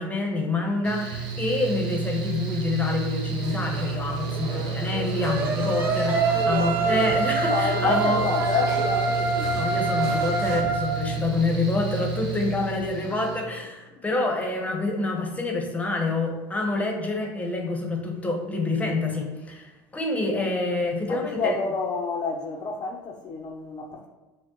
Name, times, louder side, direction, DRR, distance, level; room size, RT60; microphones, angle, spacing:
voice 1, 0.0-8.3 9.5-21.6, left 2 dB, 15° left, 0.8 m, -27 dB
Mechanical fan, 0.8-13.4, right 5 dB, 55° right, 0.9 m, -31 dB
sound 1, 3.4-10.6, right 2 dB, 75° right, 0.8 m, -36 dB
sound 2, 5.3-11.0, right 4 dB, 25° right, 0.5 m, -26 dB
voice 2, 6.1-7.2 7.5-9.6 10.1-10.4 13.1-13.2 14.1-14.3 21.1-24.1, left 4 dB, 40° left, 0.5 m, -29 dB
5.9 x 2.1 x 3.0 m
supercardioid pair, 105°, 10 cm